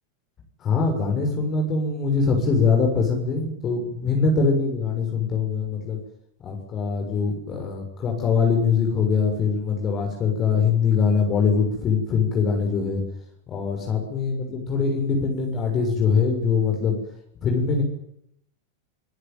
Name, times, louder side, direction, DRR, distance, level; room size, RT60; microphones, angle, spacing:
voice 1, 0.6-6.0 6.4-13.0 13.5-17.0 17.4-17.8, left 5 dB, 30° left, 1 dB, 6.8 m, -23 dB
27.5 x 17.0 x 9.4 m, 0.73 s
figure-of-eight pair, 90°, 0 cm